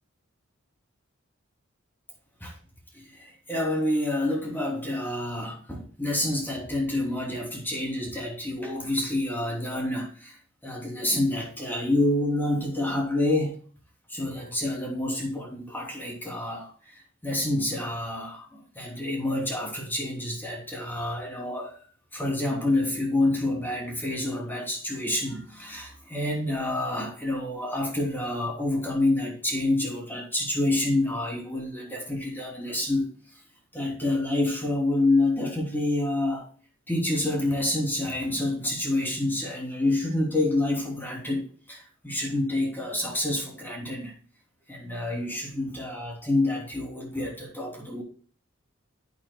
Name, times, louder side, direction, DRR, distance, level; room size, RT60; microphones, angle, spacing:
voice 1, 2.9-10.4 10.6-13.6 14.1-21.8 22.1-33.2 33.7-36.5 36.9-44.1 44.7-48.0, left 1 dB, 10° left, -2 dB, 3.1 m, -28 dB
11.0 x 9.0 x 2.3 m, 0.42 s
head